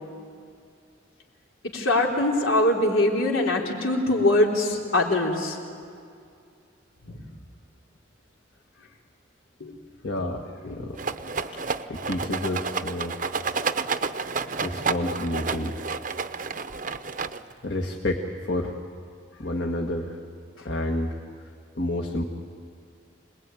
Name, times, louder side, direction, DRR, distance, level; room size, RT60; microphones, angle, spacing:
voice 1, 1.7-5.6 7.0-7.2 9.6-9.7 10.6-10.8, left 1 dB, 90° left, -1 dB, 3.8 m, -23 dB
voice 2, 10.0-11.0 11.4-13.2 13.5-13.7 14.6-15.8 17.6-18.7 19.3-20.2 20.7-21.2 21.8-22.2, left 1 dB, 60° left, 1 dB, 1.7 m, -30 dB
Rattle, 11.0-17.6, right 4 dB, 40° right, 0.7 m, -30 dB
26.0 x 20.0 x 9.2 m, 2.3 s
head